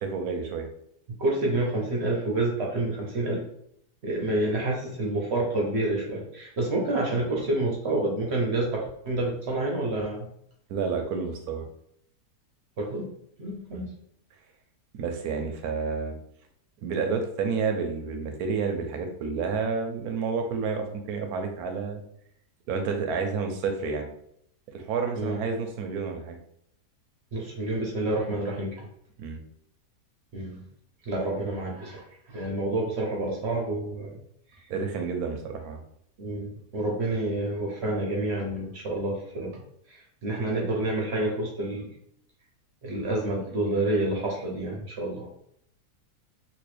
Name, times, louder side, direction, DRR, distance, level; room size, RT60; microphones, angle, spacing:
voice 1, 0.0-0.7 10.7-11.7 13.7-13.9 14.9-16.2 16.8-22.0 22.7-24.1 24.7-26.4 29.2-29.4 34.7-35.8, right 5 dB, 75° right, 4 dB, 1.1 m, -30 dB
voice 2, 1.2-3.4 4.0-10.3 12.8-13.0 13.4-13.9 25.1-25.4 27.3-28.9 30.3-30.6 31.1-34.1 36.2-39.6 39.9-41.9 42.8-45.3, right 2 dB, 55° right, -2 dB, 0.9 m, -28 dB
3.1 x 3.0 x 3.2 m, 0.71 s
omnidirectional pair, 1.7 m